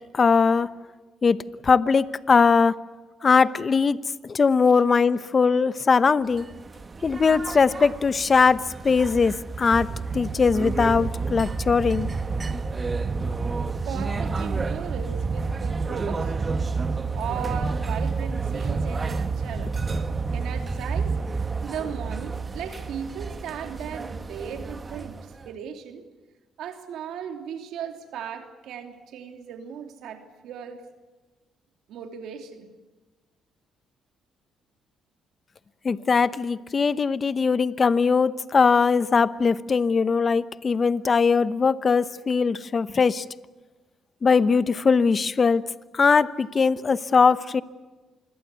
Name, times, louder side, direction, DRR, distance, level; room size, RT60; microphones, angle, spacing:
voice 1, 0.1-0.7 1.2-2.8 3.2-4.0 4.2-6.5 7.0-12.1 35.8-43.2 44.2-45.7 45.9-47.6, left 5 dB, 35° left, 15 dB, 0.9 m, -20 dB
sound 1, 6.3-25.5, right 4 dB, 30° right, 1.5 m, -30 dB
voice 2, 13.8-16.3 17.1-19.7 20.3-21.1 21.6-26.0 26.6-30.8 31.9-32.7, right 8 dB, 80° right, 5 dB, 3.0 m, -37 dB
26.5 x 21.5 x 8.3 m, 1.2 s
cardioid pair, 90°, 0 cm